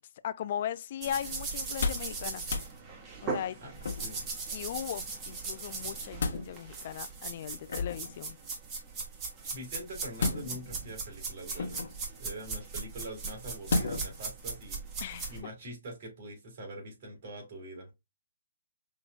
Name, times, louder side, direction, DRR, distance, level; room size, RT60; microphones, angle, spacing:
voice 1, 0.2-2.4 3.2-3.6 4.5-8.4 15.0-15.3, left 10 dB, 45° left, 0.3 m, -38 dB
sound 1, 1.0-15.4, right 4 dB, 20° right, 1.2 m, -39 dB
sound 2, 1.6-2.1 2.4-2.7 3.8-4.3 5.7-6.5 7.7-8.1 10.2-10.8 11.5-12.0 13.7-14.2 14.6-14.7, left 4 dB, 60° left, 1.0 m, -33 dB
voice 2, 3.6-4.2 9.5-17.9, right 1 dB, 45° right, 2.8 m, -44 dB
5.5 x 2.9 x 2.3 m
hypercardioid pair, 145°, 0 cm